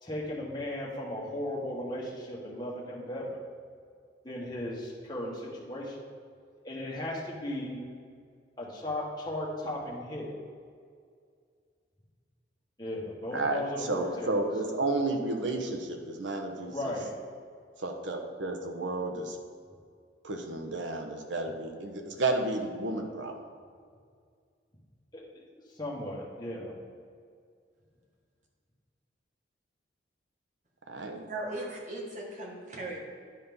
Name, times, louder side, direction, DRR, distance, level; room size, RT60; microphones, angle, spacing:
voice 1, 0.0-3.3 4.2-5.9 6.6-7.8 8.6-10.3 12.8-14.4 15.0-15.2 16.7-17.1 25.1-25.2 25.8-26.7, left 1 dB, 25° left, -5 dB, 1.7 m, -36 dB
voice 2, 13.3-16.9 17.8-19.4 20.2-23.3 30.9-31.3, right 2 dB, 85° right, 3 dB, 1.0 m, -32 dB
voice 3, 31.3-33.0, right 2 dB, 40° right, -1 dB, 1.5 m, -38 dB
10.5 x 4.2 x 5.4 m, 2.1 s
head